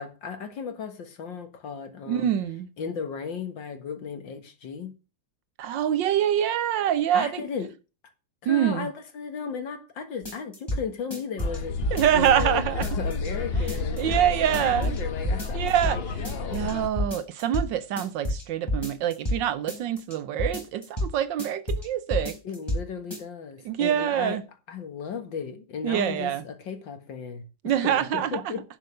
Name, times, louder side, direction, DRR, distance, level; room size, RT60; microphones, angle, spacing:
voice 1, 0.0-2.3 2.8-4.9 7.1-7.7 8.4-11.8 12.1-16.7 22.4-24.4 24.7-27.4 27.8-28.6, left 6 dB, 65° left, 2.3 m, -35 dB
voice 2, 2.1-2.7 5.6-7.4 8.5-8.9 11.9-12.9 14.0-15.0 15.5-16.0 16.5-22.4 23.6-24.4 25.8-26.4 27.6-28.5, right 10 dB, 70° right, 1.3 m, -25 dB
sound 1, 10.3-10.8 11.1-12.5 12.8-13.3 13.5-14.2 14.5-15.0 15.2-16.0 16.2-16.7 17.0-17.7 18.0-19.4 19.7-20.1 20.4-21.1 21.4-21.9 22.1-22.8 23.1-23.2, equal, 10° left, 4.2 m, -29 dB
sound 2, 11.4-16.9, left 4 dB, 50° left, 0.7 m, -31 dB
11.0 x 5.5 x 6.5 m
omnidirectional pair, 2.2 m